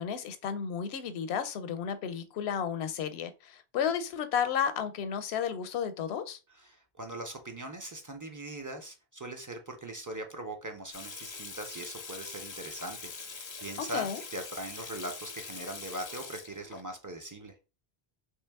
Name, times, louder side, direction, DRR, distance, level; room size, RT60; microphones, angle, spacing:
voice 1, 0.0-6.4 13.8-14.2, left 7 dB, 80° left, 0.8 m, -32 dB
voice 2, 6.6-17.5, right 1 dB, 30° right, 0.4 m, -41 dB
Water tap faucet / Sink (filling or washing), 10.9-16.8, left 4 dB, 40° left, 0.4 m, -43 dB
3.1 x 3.0 x 3.4 m
omnidirectional pair, 1.1 m